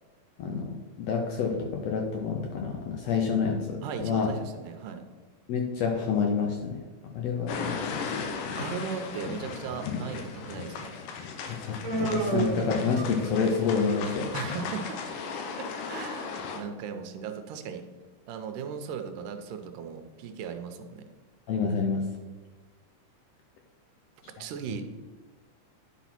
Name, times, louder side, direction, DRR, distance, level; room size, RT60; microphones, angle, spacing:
voice 1, 0.4-4.3 5.5-6.8 7.1-8.6 11.5-14.3 21.5-22.0, left 5 dB, 75° left, 1 dB, 1.6 m, -28 dB
voice 2, 3.8-5.0 8.6-10.9 14.3-15.0 15.6-17.8 18.3-21.1 24.4-24.8, right 6 dB, 85° right, 7 dB, 2.3 m, -37 dB
sound 1, 7.5-16.6, left 5 dB, 90° left, 2.6 m, -36 dB
Human voice, 11.8-13.5, right 3 dB, 65° right, 2.1 m, -30 dB
10.5 x 4.1 x 5.8 m, 1.3 s
omnidirectional pair, 3.8 m